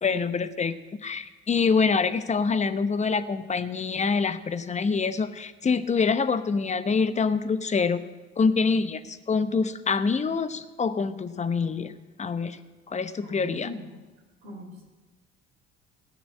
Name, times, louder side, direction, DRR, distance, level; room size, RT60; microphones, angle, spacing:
voice 1, 0.0-0.7 1.0-8.0 8.4-12.6 12.9-13.7, left 5 dB, 20° left, 11 dB, 0.9 m, -25 dB
voice 2, 13.2-13.8 14.4-14.8, equal, 75° right, 0 dB, 3.4 m, -40 dB
17.0 x 6.9 x 8.7 m, 1.2 s
figure-of-eight pair, 55°, 32 cm